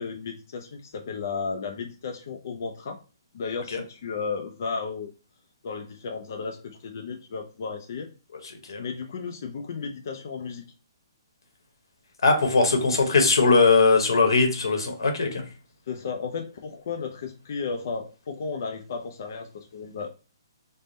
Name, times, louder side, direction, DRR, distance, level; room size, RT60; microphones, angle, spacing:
voice 1, 0.0-3.0 3.3-5.1 5.6-8.1 8.8-10.6 15.9-20.1, left 5 dB, 40° left, 3 dB, 0.3 m, -34 dB
voice 2, 12.2-15.4, left 4 dB, 85° left, 5 dB, 1.0 m, -20 dB
3.5 x 2.1 x 3.9 m, 0.34 s
hypercardioid pair, 180°, 2 cm